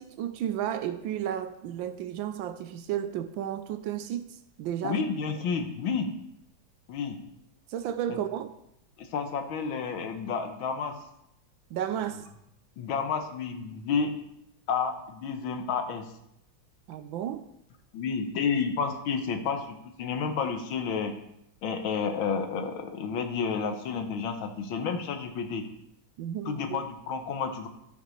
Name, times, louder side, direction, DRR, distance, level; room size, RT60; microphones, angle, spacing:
voice 1, 0.0-5.0 7.7-8.5 11.7-12.2 16.9-17.5 26.2-26.8, right 10 dB, 75° right, 10 dB, 1.3 m, -33 dB
voice 2, 4.8-6.1 6.9-7.2 8.1-8.2 9.0-11.0 12.8-14.2 14.7-16.1 17.9-21.1 21.6-25.7 26.5-27.7, left 5 dB, 80° left, 6 dB, 1.7 m, -30 dB
13.5 x 5.8 x 3.2 m, 0.78 s
omnidirectional pair, 2.2 m